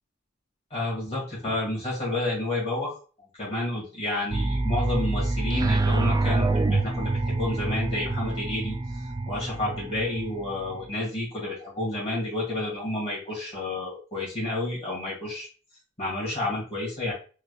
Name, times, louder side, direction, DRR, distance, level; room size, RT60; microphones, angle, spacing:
voice 1, 0.7-2.9 3.4-8.8 9.3-15.5 16.0-17.1, left 1 dB, 35° left, -5 dB, 1.9 m, -30 dB
sound 1, 4.3-11.0, right 2 dB, 20° right, 0.3 m, -27 dB
3.8 x 3.3 x 2.3 m, 0.37 s
head